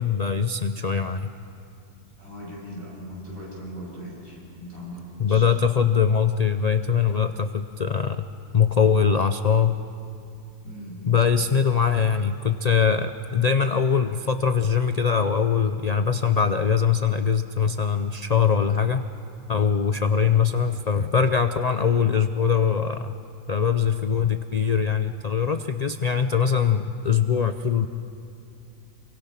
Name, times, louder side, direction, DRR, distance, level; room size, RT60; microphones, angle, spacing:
voice 1, 0.0-1.3 5.2-8.3 8.5-9.8 11.1-19.1 19.5-23.1 23.5-27.9, left 6 dB, 50° left, 9 dB, 0.4 m, -22 dB
voice 2, 2.2-5.5 10.6-11.2, equal, 75° right, -5 dB, 8.3 m, -39 dB
27.0 x 24.0 x 5.8 m, 2.6 s
omnidirectional pair, 1.4 m